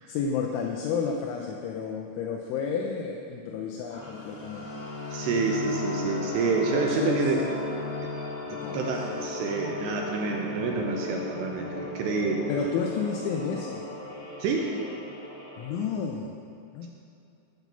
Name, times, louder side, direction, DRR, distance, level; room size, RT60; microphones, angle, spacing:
voice 1, 0.1-4.7 6.7-7.3 8.5-8.8 12.5-13.9 15.6-16.4 16.7-16.9, left 6 dB, 80° left, 0 dB, 2.9 m, -31 dB
sound 1, 3.9-15.9, left 3 dB, 40° left, 2.9 m, -36 dB
voice 2, 5.1-7.5 8.7-12.4 14.4-14.7, right 4 dB, 80° right, 1 dB, 2.5 m, -28 dB
9.1 x 6.0 x 6.8 m, 2.6 s
omnidirectional pair, 5.6 m